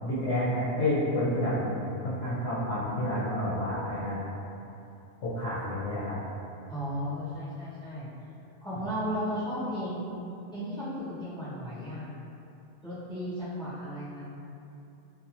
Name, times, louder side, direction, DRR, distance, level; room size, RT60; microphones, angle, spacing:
voice 1, 0.0-4.2 5.2-6.2, left 1 dB, 70° left, -10 dB, 0.9 m, -29 dB
voice 2, 6.7-8.1 8.6-10.2 10.5-12.1 12.8-14.4, equal, 5° left, -12 dB, 0.4 m, -35 dB
2.8 x 2.2 x 2.5 m, 2.8 s
omnidirectional pair, 1.2 m